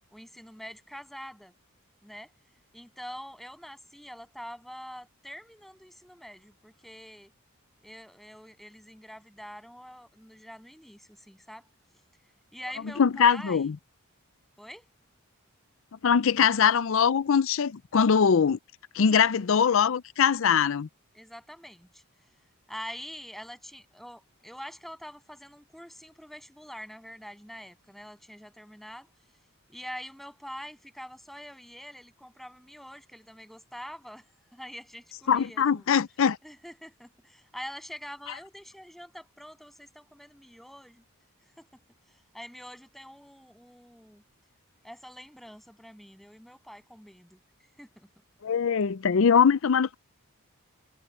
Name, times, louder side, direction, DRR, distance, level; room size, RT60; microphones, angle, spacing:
voice 1, 0.1-1.5 2.0-2.3 2.7-7.3 7.8-11.6 12.5-13.7 14.6-14.9 21.1-22.0 22.7-29.1 29.7-35.9 36.4-41.0 41.6-41.8 42.3-44.2 44.8-47.4 47.8-48.1, equal, ahead, 7.7 m, -45 dB
voice 2, 13.0-13.8 16.0-18.6 18.9-20.9 35.3-36.4 48.4-49.9, left 7 dB, 60° left, 0.5 m, -22 dB
head